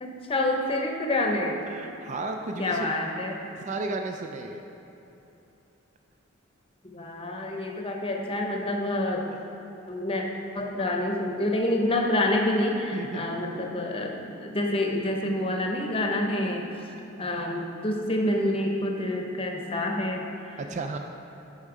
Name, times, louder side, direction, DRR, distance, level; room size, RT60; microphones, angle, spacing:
voice 1, 0.0-1.6 2.6-3.4 6.8-9.2 9.9-10.2 10.5-16.7 17.2-20.6, left 1 dB, 30° left, 2 dB, 0.8 m, -27 dB
voice 2, 1.7-2.9 3.7-4.6 12.9-13.2 20.7-21.0, right 3 dB, 35° right, 4 dB, 0.4 m, -33 dB
11.0 x 5.4 x 4.9 m, 3.0 s
head